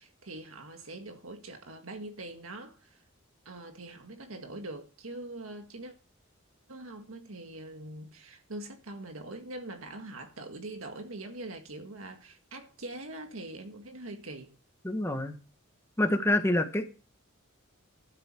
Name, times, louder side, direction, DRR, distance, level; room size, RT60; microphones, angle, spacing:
voice 1, 0.0-3.0 3.5-5.9 6.7-14.5, right 2 dB, 85° right, 1.8 m, -43 dB
voice 2, 14.8-15.4 16.0-16.9, left 1 dB, 15° left, 1.5 m, -27 dB
12.0 x 7.0 x 7.6 m
head